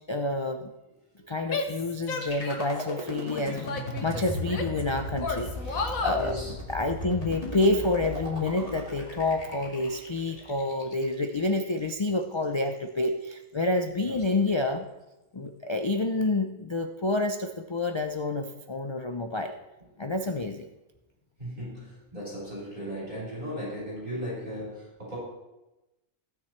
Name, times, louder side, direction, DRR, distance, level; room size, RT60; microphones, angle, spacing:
voice 1, 0.1-0.7 1.3-3.7 4.0-6.4 6.7-14.9 15.3-19.6 20.0-20.7, left 2 dB, 45° left, 6 dB, 0.3 m, -28 dB
voice 2, 1.1-1.5 5.5-5.9 6.2-6.5 14.0-14.4 21.4-25.2, equal, 35° right, -6 dB, 5.0 m, -37 dB
Female speech woman speaking / Yell, 1.5-2.8 3.3-4.8 5.2-6.3, left 4 dB, 75° left, 1.6 m, -33 dB
sound 1, 2.0-12.0, left 1 dB, 25° left, 2.3 m, -37 dB
16.0 x 9.6 x 3.2 m, 1.0 s
omnidirectional pair, 1.4 m